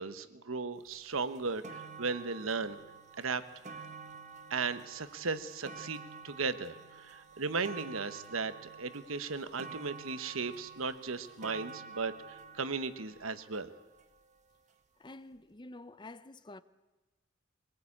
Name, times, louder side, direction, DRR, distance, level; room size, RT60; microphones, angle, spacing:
voice 1, 0.0-2.8 3.2-3.4 4.5-8.5 8.8-13.7, right 4 dB, 90° right, 1.1 m, -36 dB
sound 1, 0.9-1.0 1.3-14.5 15.3-15.4, right 5 dB, 35° right, 1.7 m, -50 dB
voice 2, 15.0-16.6, left 2 dB, 20° left, 0.7 m, -49 dB
22.0 x 19.5 x 8.6 m
head